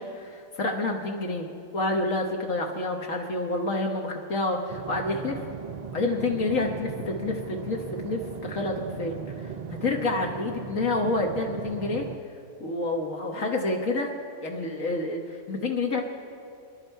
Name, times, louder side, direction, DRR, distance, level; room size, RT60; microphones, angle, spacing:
voice 1, 0.0-5.4 5.9-9.5 9.8-12.1 12.6-14.1 14.4-16.0, left 2 dB, 70° left, 1 dB, 1.6 m, -28 dB
sound 1, 4.7-12.2, right 6 dB, 60° right, 0.4 m, -38 dB
28.5 x 11.0 x 4.6 m, 2.6 s
omnidirectional pair, 1.5 m